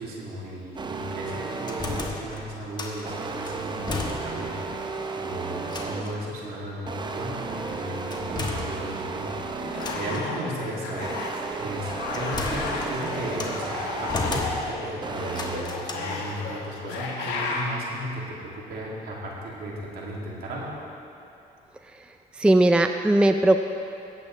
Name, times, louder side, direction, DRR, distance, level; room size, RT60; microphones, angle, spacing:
voice 1, 0.0-11.2 11.6-20.8, right 1 dB, 65° right, -4 dB, 2.6 m, -35 dB
sound 1, 0.8-2.3 3.0-6.3 6.9-10.4 10.9-14.6 15.0-15.6, right 4 dB, 25° right, 0.7 m, -34 dB
sound 2, 1.5-3.1 3.4-4.6 4.9-5.0 5.6-6.3 8.1-9.2 9.7-10.3 11.5-13.6 14.1-14.9 15.3-15.9, left 3 dB, 25° left, 1.2 m, -34 dB
sound 3, 9.6-11.5 11.8-17.7, left 3 dB, 90° left, 1.6 m, -33 dB
voice 2, 22.3-23.6, right 1 dB, 5° right, 6 dB, 0.4 m, -19 dB
17.0 x 8.3 x 3.3 m, 2.9 s
cardioid pair, 110°, 17 cm